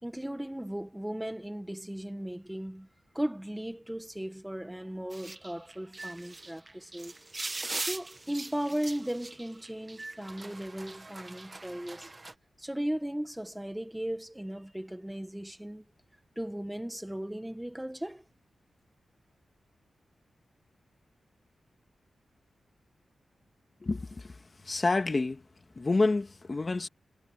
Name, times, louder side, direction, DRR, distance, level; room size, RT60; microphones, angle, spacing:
voice 1, 0.0-2.9 3.1-7.1 7.8-12.1 12.6-15.8 16.3-18.2, right 1 dB, 5° right, 1.5 m, -36 dB
sound 1, 5.1-12.3, right 2 dB, 25° right, 1.5 m, -41 dB
voice 2, 23.8-25.5 25.8-26.9, left 3 dB, 35° left, 1.9 m, -29 dB
wide cardioid pair, 95°, 0 cm